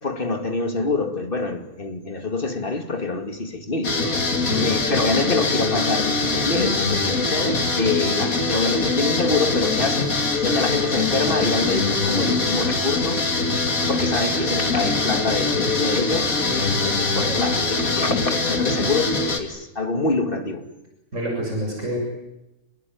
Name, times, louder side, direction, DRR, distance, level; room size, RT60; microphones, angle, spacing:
voice 1, 0.0-4.3 4.6-13.3 13.9-20.7, left 3 dB, 35° left, 2.7 m, -26 dB
sound 1, 3.8-19.4, left 3 dB, 65° left, 2.9 m, -23 dB
voice 2, 4.4-4.8 21.1-22.0, right 1 dB, 55° right, 7.6 m, -27 dB
28.0 x 21.5 x 9.6 m
omnidirectional pair, 1.6 m